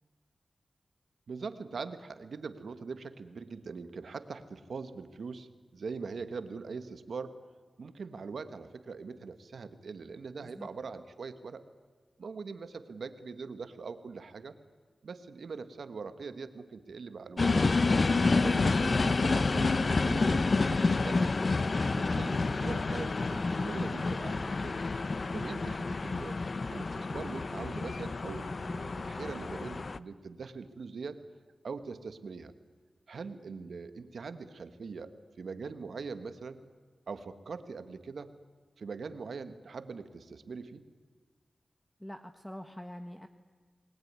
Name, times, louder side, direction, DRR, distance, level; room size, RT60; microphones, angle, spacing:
voice 1, 1.3-7.4 7.8-11.6 12.2-14.6 15.0-17.6 17.8-21.3 21.8-24.8 25.3-26.4 26.7-31.2 31.6-32.5 33.1-35.1 35.4-36.6 37.1-38.3 38.8-40.8, right 4 dB, 85° right, 10 dB, 1.5 m, -42 dB
sound 1, 17.4-30.0, left 3 dB, 55° left, 0.8 m, -29 dB
voice 2, 42.0-43.3, equal, 10° left, 6 dB, 1.4 m, -44 dB
28.5 x 20.0 x 9.6 m, 1.5 s
cardioid pair, 60°, 0 cm